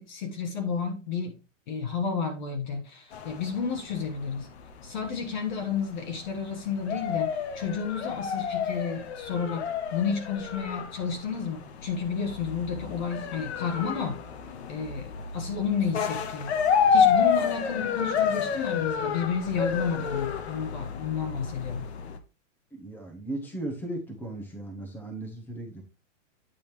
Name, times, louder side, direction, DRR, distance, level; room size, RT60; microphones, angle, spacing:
voice 1, 0.0-1.4 1.7-4.5 4.8-14.2 14.7-16.5 16.9-21.9, left 6 dB, 35° left, 5 dB, 1.2 m, -31 dB
sound 1, 3.1-22.2, left 6 dB, 55° left, 1.1 m, -29 dB
voice 2, 22.7-25.8, right 1 dB, 5° left, 4 dB, 0.8 m, -36 dB
9.0 x 5.1 x 3.0 m, 0.32 s
hypercardioid pair, 170°, 39 cm